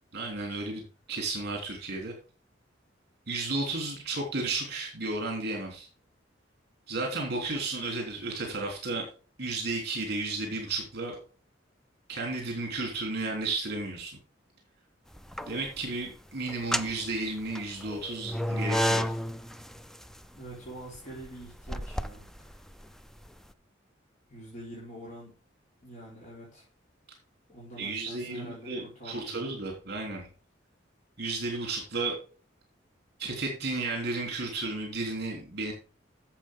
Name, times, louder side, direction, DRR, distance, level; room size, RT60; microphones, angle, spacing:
voice 1, 0.1-2.1 3.3-5.9 6.9-9.1 9.4-11.2 12.1-14.2 15.5-19.1 27.8-30.3 31.2-32.2 33.2-35.7, right 3 dB, 55° right, 1 dB, 3.3 m, -33 dB
sound 1, 15.1-15.8 16.5-23.4, equal, ahead, 0.5 m, -32 dB
voice 2, 20.3-22.6 24.3-25.3 25.8-26.7 27.5-29.4, right 1 dB, 40° left, -6 dB, 4.3 m, -45 dB
11.5 x 7.6 x 3.7 m, 0.37 s
head